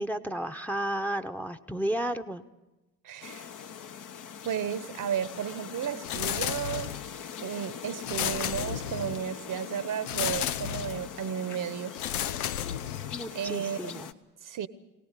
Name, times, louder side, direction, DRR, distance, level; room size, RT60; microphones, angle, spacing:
voice 1, 0.0-2.4 13.1-14.1, right 1 dB, 5° left, 11 dB, 1.1 m, -32 dB
voice 2, 3.0-3.5 4.4-6.9 7.4-12.0 13.3-14.0 14.4-14.7, right 8 dB, 45° right, 15 dB, 1.2 m, -33 dB
sound 1, 3.2-14.1, left 7 dB, 45° left, 1.2 m, -42 dB
sound 2, 6.0-7.2 8.0-9.3 10.1-11.1 11.9-13.3, left 11 dB, 80° left, 0.7 m, -32 dB
25.0 x 18.5 x 8.4 m, 1.1 s
figure-of-eight pair, 50°, 44 cm